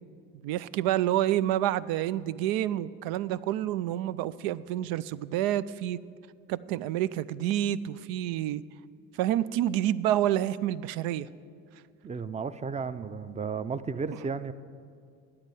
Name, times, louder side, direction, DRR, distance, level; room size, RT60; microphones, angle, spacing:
voice 1, 0.4-6.0 6.5-8.6 9.2-11.3, right 12 dB, 85° right, 16 dB, 0.5 m, -28 dB
voice 2, 12.0-14.5, right 5 dB, 20° right, 13 dB, 0.5 m, -33 dB
9.5 x 8.8 x 9.2 m, 2.3 s
supercardioid pair, 85°, 34 cm